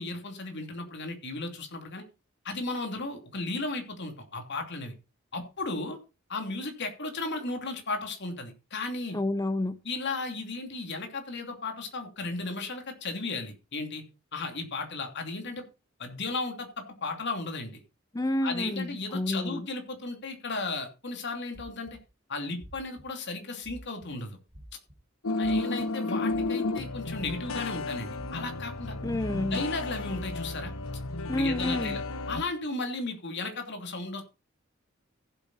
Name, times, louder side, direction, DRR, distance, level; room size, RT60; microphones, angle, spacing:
voice 1, 0.0-2.0 2.4-4.9 5.3-6.0 6.3-9.2 9.8-14.0 14.3-15.6 16.0-17.8 18.4-22.0 22.3-24.4 25.3-28.9 29.5-30.7 31.3-32.0 32.3-34.2, left 3 dB, 55° left, 2.9 m, -35 dB
voice 2, 9.1-9.8 18.1-19.7 29.0-29.6 31.3-32.0, left 1 dB, 15° left, 0.6 m, -29 dB
sound 1, 21.5-22.0 22.6-23.0 23.6-24.1 24.5-24.9 25.4-25.8 26.3-26.7 27.1-27.8 28.1-28.6 29.1-29.5 30.1-30.5, equal, 30° right, 3.3 m, -47 dB
sound 2, 25.2-32.4, left 2 dB, 90° left, 1.2 m, -32 dB
15.5 x 7.9 x 4.2 m
head